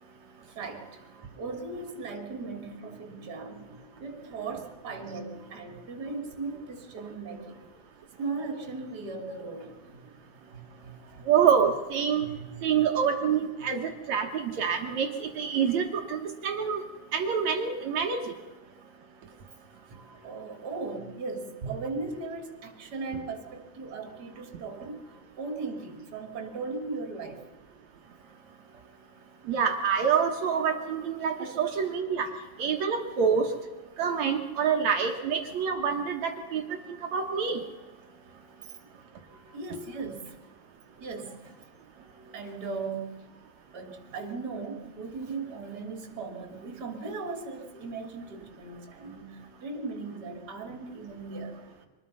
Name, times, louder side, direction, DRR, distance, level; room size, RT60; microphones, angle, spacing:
voice 1, 0.5-1.0 1.4-7.6 8.2-10.1 10.5-11.3 12.3-12.8 13.2-13.4 20.2-25.0 25.4-27.4 28.7-28.8 31.4-31.6 38.4-38.7 39.5-40.4 41.0-41.7 42.3-43.3 43.7-51.5, right 3 dB, 25° right, 5 dB, 2.7 m, -38 dB
voice 2, 11.3-12.3 12.6-16.8 17.1-18.3 29.5-32.3 32.6-33.5 34.0-36.6 37.1-37.6, right 7 dB, 65° right, 4 dB, 1.7 m, -26 dB
25.0 x 20.0 x 5.6 m, 1.3 s
omnidirectional pair, 5.1 m